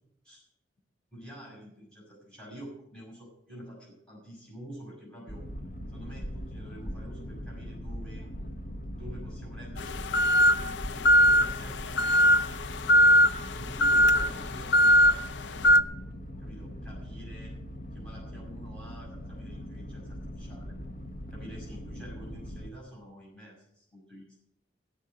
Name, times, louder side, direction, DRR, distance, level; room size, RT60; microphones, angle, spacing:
voice 1, 1.1-5.5 5.9-8.3 9.0-12.5 13.6-15.8 16.4-17.6 17.9-20.7 21.3-24.4, right 1 dB, 5° left, -5 dB, 6.3 m, -47 dB
Boat Water vehicle, 5.3-22.7, equal, 50° left, 1.2 m, -40 dB
sound 1, 9.8-15.8, equal, 80° left, 0.6 m, -22 dB
16.5 x 6.3 x 9.0 m, 0.74 s
head